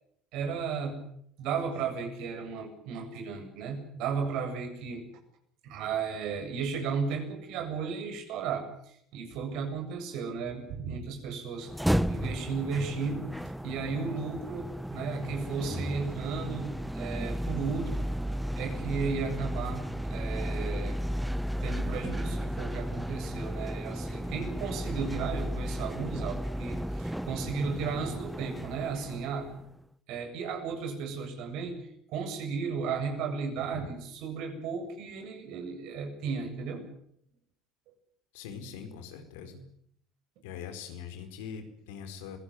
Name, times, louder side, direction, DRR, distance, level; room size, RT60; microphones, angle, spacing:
voice 1, 0.3-1.0 1.4-5.1 5.6-11.7 12.1-13.3 13.6-18.1 18.5-21.0 21.6-29.5 30.1-31.8 32.1-36.9, right 5 dB, 65° right, 5 dB, 7.8 m, -34 dB
sound 1, 11.6-29.8, equal, 5° right, 0.9 m, -34 dB
voice 2, 38.3-39.6 40.4-42.4, left 7 dB, 80° left, 8 dB, 4.6 m, -42 dB
25.5 x 17.5 x 9.8 m, 0.71 s
supercardioid pair, 85°, 0 cm